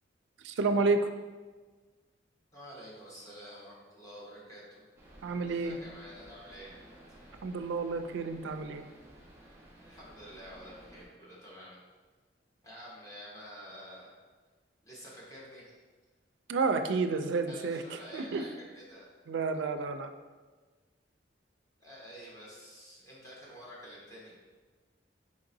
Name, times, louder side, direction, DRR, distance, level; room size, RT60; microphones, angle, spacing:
voice 1, 0.4-1.1 5.2-5.8 7.4-8.8 16.5-17.8 18.1-18.4 19.3-20.1, right 4 dB, 80° right, 8 dB, 0.4 m, -30 dB
voice 2, 2.5-4.8 5.5-6.7 7.1-7.2 9.8-11.8 12.6-14.1 14.8-15.7 17.5-19.1 21.8-24.3, equal, 20° left, -6 dB, 1.1 m, -49 dB
sound 1, 5.0-11.1, right 1 dB, 15° right, 1.2 m, -55 dB
5.0 x 3.8 x 2.7 m, 1.3 s
head